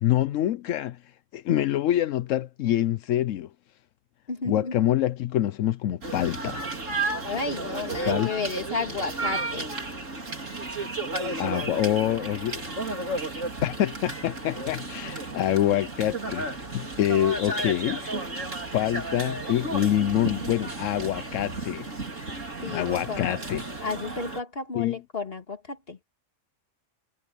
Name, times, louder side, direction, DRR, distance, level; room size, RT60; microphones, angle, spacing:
voice 1, 0.0-1.0 1.3-3.5 4.4-6.7 8.0-8.3 11.4-12.6 12.9-13.2 13.6-18.3 18.7-21.9 22.7-23.6 24.7-24.9, left 12 dB, 85° left, 1.0 m, -26 dB
voice 2, 4.3-4.7 7.3-9.7 22.6-23.3 23.8-26.0, left 4 dB, 50° left, 2.4 m, -32 dB
sound 1, 6.0-24.4, right 2 dB, 75° right, 4.2 m, -33 dB
omnidirectional pair, 1.3 m